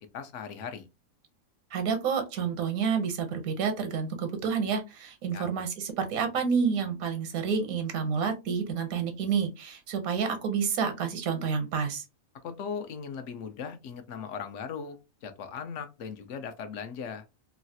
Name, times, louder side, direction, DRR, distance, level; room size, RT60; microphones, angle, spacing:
voice 1, 0.1-0.9 5.3-5.5 12.4-17.2, left 6 dB, 70° left, 0.8 m, -38 dB
voice 2, 1.7-12.0, right 6 dB, 80° right, 1.2 m, -29 dB
3.1 x 2.3 x 2.6 m
omnidirectional pair, 1.5 m